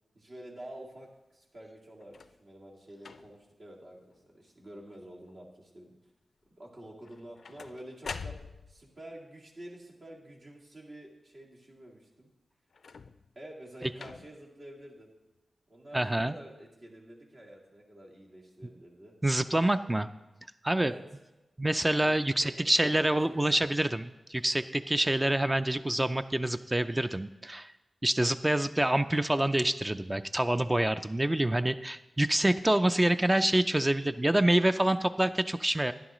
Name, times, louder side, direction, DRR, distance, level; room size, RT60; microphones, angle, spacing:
voice 1, 0.1-5.9 6.6-8.3 8.7-12.3 13.4-15.1 15.7-19.1 20.8-21.0 21.9-23.2 23.5-23.9, right 1 dB, 60° right, -3 dB, 2.1 m, -49 dB
sound 1, 2.0-2.4 3.0-3.5 4.1-4.5 4.8-5.3 7.0-8.9 12.7-13.4 14.0-14.5 15.4-15.5, left 5 dB, 75° left, 0.3 m, -45 dB
voice 2, 15.9-16.3 19.2-20.1 20.6-20.9 21.6-27.7 28.0-35.9, right 1 dB, 15° right, 11 dB, 0.3 m, -26 dB
11.5 x 10.0 x 3.0 m, 1.0 s
wide cardioid pair, 90°, 0 cm